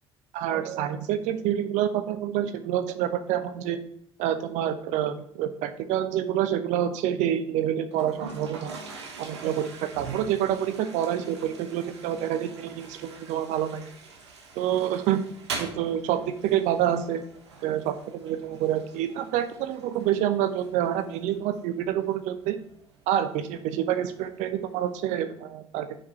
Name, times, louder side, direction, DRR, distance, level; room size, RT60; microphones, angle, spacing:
voice 1, 0.3-3.8 4.2-8.7 9.2-13.9 14.6-15.2 15.6-17.2 17.6-22.6 23.1-26.0, right 10 dB, 60° right, 9 dB, 0.7 m, -27 dB
Toilet flush, 7.9-24.9, right 4 dB, 80° right, 1.0 m, -44 dB
5.9 x 4.7 x 5.7 m, 0.72 s
figure-of-eight pair, 55°, 14 cm